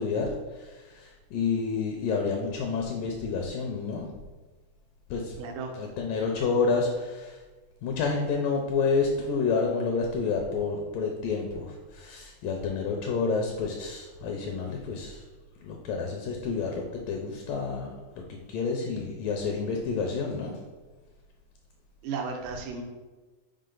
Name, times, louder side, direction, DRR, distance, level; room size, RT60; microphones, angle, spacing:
voice 1, 0.0-4.1 5.1-5.4 5.7-7.4 7.8-15.2 15.6-20.6, left 4 dB, 75° left, 1 dB, 2.1 m, -29 dB
voice 2, 5.4-5.7 22.0-22.8, right 5 dB, 75° right, 3 dB, 2.2 m, -34 dB
6.6 x 4.7 x 3.8 m, 1.3 s
omnidirectional pair, 4.4 m